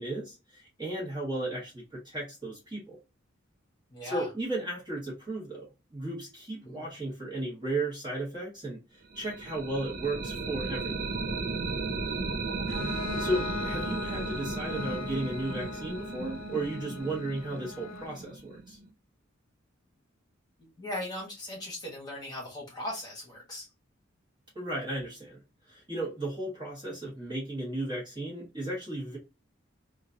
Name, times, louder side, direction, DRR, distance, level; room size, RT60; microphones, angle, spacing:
voice 1, 0.0-3.0 4.0-11.1 13.2-18.8 24.5-25.4 25.7-29.2, right 2 dB, 20° right, 1.3 m, -35 dB
voice 2, 3.9-4.3 6.6-6.9 20.6-23.7, left 1 dB, 20° left, 1.3 m, -38 dB
sound 1, 9.1-18.9, right 3 dB, 45° right, 0.4 m, -35 dB
Bowed string instrument, 12.7-18.3, left 5 dB, 70° left, 0.3 m, -40 dB
3.0 x 2.4 x 2.5 m
head